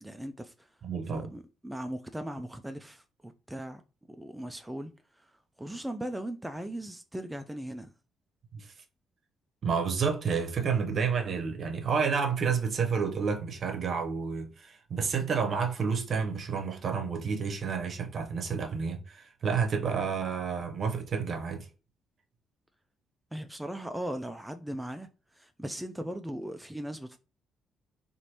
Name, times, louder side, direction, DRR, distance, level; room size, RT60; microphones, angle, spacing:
voice 1, 0.0-0.7 1.1-3.8 4.2-5.2 5.6-7.9 23.3-25.1 25.3-27.2, right 1 dB, 10° right, 0.4 m, -38 dB
voice 2, 0.8-1.3 8.5-8.7 9.6-21.7, right 6 dB, 55° right, 0.8 m, -30 dB
3.0 x 2.5 x 2.8 m
hypercardioid pair, 45°, 0 cm